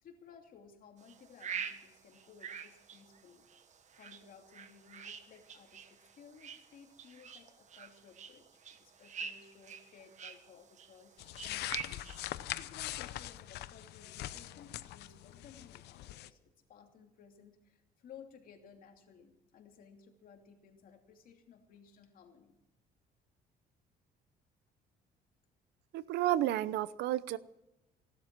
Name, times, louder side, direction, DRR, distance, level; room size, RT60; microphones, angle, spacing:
voice 1, 0.0-3.5 3.9-11.2 11.4-22.6, left 6 dB, 55° left, 3 dB, 2.9 m, -58 dB
sound 1, 1.0-12.3, right 7 dB, 45° right, 1.4 m, -47 dB
sound 2, 11.2-16.3, left 14 dB, 80° left, 0.8 m, -42 dB
voice 2, 25.9-27.4, right 13 dB, 80° right, 17 dB, 0.8 m, -31 dB
17.0 x 12.5 x 6.1 m, 0.93 s
cardioid pair, 110°, 17 cm